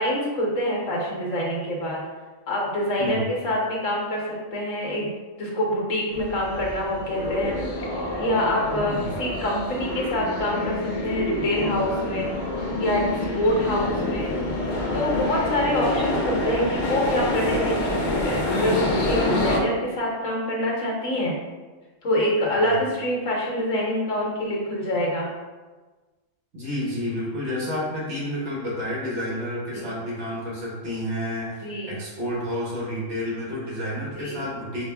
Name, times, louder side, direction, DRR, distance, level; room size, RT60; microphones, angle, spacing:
voice 1, 0.0-2.0 2.5-5.1 5.4-12.3 12.8-14.3 14.9-21.4 22.0-25.3 29.7-29.9 31.6-31.9 34.0-34.4, left 1 dB, 75° left, -3 dB, 1.3 m, -26 dB
sound 1, 6.1-19.6, left 1 dB, 55° left, 0.5 m, -27 dB
voice 2, 8.7-9.2 13.6-13.9 22.5-22.8 26.5-34.9, left 1 dB, 60° right, -6 dB, 1.5 m, -30 dB
4.7 x 2.2 x 3.4 m, 1.3 s
omnidirectional pair, 1.3 m